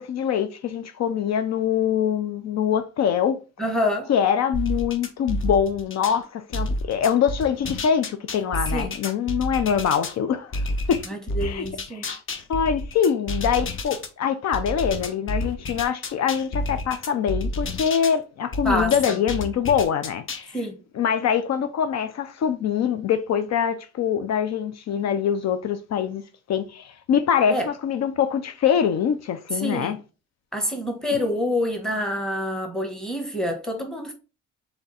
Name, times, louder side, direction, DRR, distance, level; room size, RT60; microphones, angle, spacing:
voice 1, 0.0-3.4 4.1-10.6 10.9-11.0 11.4-11.7 11.9-12.2 12.5-20.6 20.9-26.2 26.5-30.0, left 8 dB, 60° left, 0.5 m, -24 dB
voice 2, 3.6-4.1 8.7-8.9 11.1-12.1 18.6-18.9 20.5-20.8 27.5-27.7 29.5-29.9 30.5-34.1, left 1 dB, ahead, 1.3 m, -27 dB
sound 1, 4.5-6.2 6.5-10.2 10.5-14.1 14.5-18.2 18.5-20.5, left 1 dB, 45° left, 0.9 m, -30 dB
3.5 x 3.4 x 4.1 m
cardioid pair, 90°, 30 cm